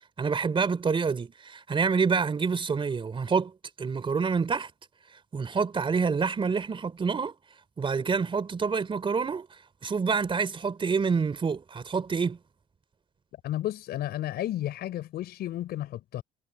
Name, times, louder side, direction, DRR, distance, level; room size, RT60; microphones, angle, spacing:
voice 1, 0.2-3.5 3.8-4.7 5.3-7.3 7.8-9.5 9.8-12.4, right 5 dB, 30° right, 3.5 m, -27 dB
voice 2, 13.4-16.2, left 13 dB, 70° left, 5.4 m, -32 dB
cardioid pair, 110°, 17 cm